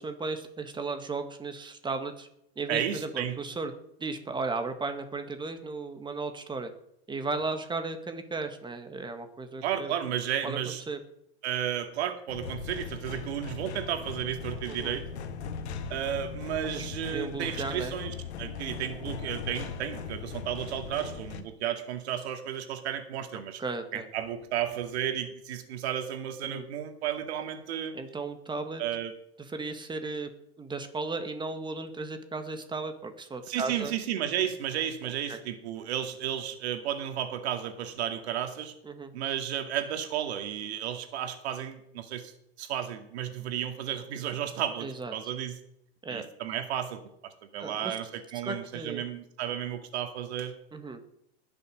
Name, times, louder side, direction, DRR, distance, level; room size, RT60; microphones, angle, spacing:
voice 1, 0.0-2.3 2.6-3.7 4.0-6.7 7.1-9.9 10.4-10.6 10.9-11.0 14.7-15.0 16.7-18.0 23.6-24.1 26.4-26.7 27.9-28.8 29.4-30.3 30.6-33.9 35.3-35.4 38.8-39.1 44.8-45.1 46.0-46.3 47.6-48.0 48.4-49.0 50.7-51.0, right 3 dB, 15° right, 7 dB, 1.9 m, -35 dB
voice 2, 2.7-3.4 9.6-10.8 11.4-15.0 15.9-23.6 23.9-27.9 28.8-29.1 33.5-38.7 39.1-42.3 42.6-45.6 46.1-50.5, right 10 dB, 80° right, 6 dB, 2.4 m, -33 dB
sound 1, 12.3-21.4, left 6 dB, 85° left, 1.7 m, -39 dB
20.0 x 6.9 x 6.5 m, 0.77 s
supercardioid pair, 125°, 32 cm